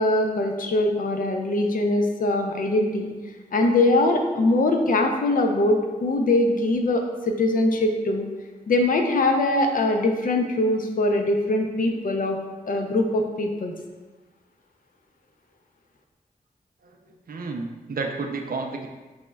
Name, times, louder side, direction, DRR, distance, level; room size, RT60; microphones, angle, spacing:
voice 1, 0.0-3.1 3.5-8.2 8.7-12.4 12.7-13.7, left 2 dB, 70° left, 3 dB, 0.5 m, -22 dB
voice 2, 16.8-18.9, right 3 dB, 75° right, 3 dB, 0.4 m, -32 dB
6.0 x 2.1 x 2.2 m, 1.3 s
wide cardioid pair, 70°, 15 cm